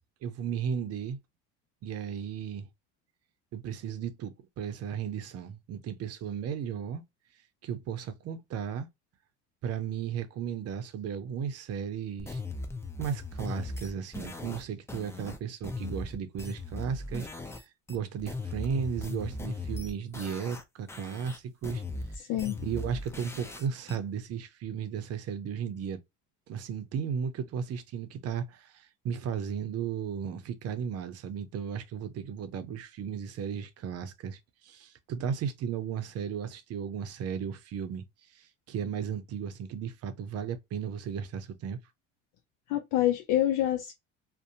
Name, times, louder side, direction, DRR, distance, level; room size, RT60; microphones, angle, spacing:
voice 1, 0.2-1.2 1.8-2.7 3.5-7.0 7.6-8.9 9.6-12.4 13.0-17.3 17.5-21.8 22.2-22.3 22.6-26.0 26.5-38.0 38.3-41.8, right 7 dB, 50° right, 0.6 m, -35 dB
sound 1, 12.2-17.6 17.9-20.6 20.9-24.0, left 3 dB, 10° left, 0.5 m, -38 dB
voice 2, 22.2-22.6 42.7-43.9, left 13 dB, 65° left, 0.5 m, -27 dB
2.6 x 2.2 x 2.5 m
supercardioid pair, 90°, 32 cm